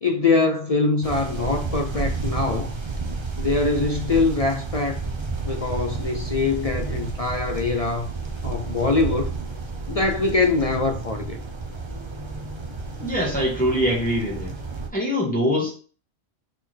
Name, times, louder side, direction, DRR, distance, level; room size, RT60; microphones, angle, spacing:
voice 1, 0.0-2.7 3.4-5.0 5.4-8.1 8.4-9.4 9.9-11.4, left 3 dB, 45° left, 0.5 m, -23 dB
sound 1, 1.0-14.9, right 3 dB, 25° right, 0.8 m, -31 dB
voice 2, 13.0-14.5 14.9-15.7, equal, 5° left, 1.9 m, -23 dB
5.7 x 4.3 x 4.6 m
omnidirectional pair, 1.3 m